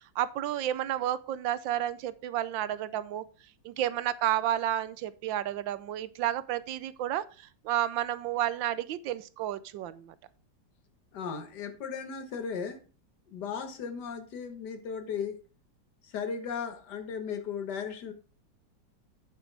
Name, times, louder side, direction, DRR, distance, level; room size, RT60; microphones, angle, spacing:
voice 1, 0.2-3.2 3.6-10.1, right 12 dB, 85° right, 1.4 m, -31 dB
voice 2, 11.1-12.8 13.3-15.4 16.0-18.1, left 6 dB, 65° left, 1.9 m, -36 dB
8.8 x 8.1 x 3.4 m
omnidirectional pair, 2.0 m